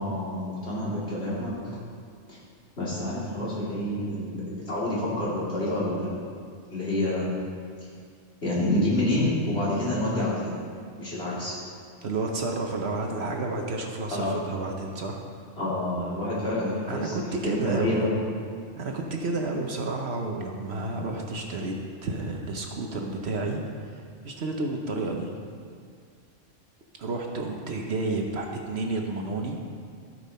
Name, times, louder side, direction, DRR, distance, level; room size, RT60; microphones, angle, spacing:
voice 1, 0.0-1.8 2.3-2.4 2.8-6.2 6.7-7.4 8.4-10.5 11.0-11.6 14.1-14.3 15.6-17.1 17.4-18.1, left 1 dB, 55° left, -9 dB, 3.3 m, -28 dB
voice 2, 12.0-15.2 16.9-18.1 18.8-21.7 22.0-23.6 23.9-25.3 27.0-29.6, right 2 dB, 60° right, 2 dB, 1.1 m, -31 dB
15.5 x 5.5 x 4.3 m, 2.2 s
omnidirectional pair, 1.3 m